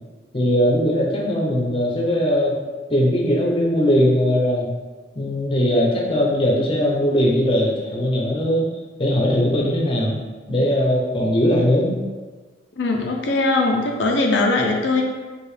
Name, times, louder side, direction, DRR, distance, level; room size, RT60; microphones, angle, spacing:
voice 1, 0.3-2.6 2.9-4.7 5.1-8.7 9.0-10.2 10.5-11.9, equal, 30° left, -2 dB, 0.7 m, -19 dB
voice 2, 12.8-15.0, left 2 dB, 80° left, 1 dB, 0.5 m, -20 dB
4.6 x 2.4 x 3.3 m, 1.3 s
head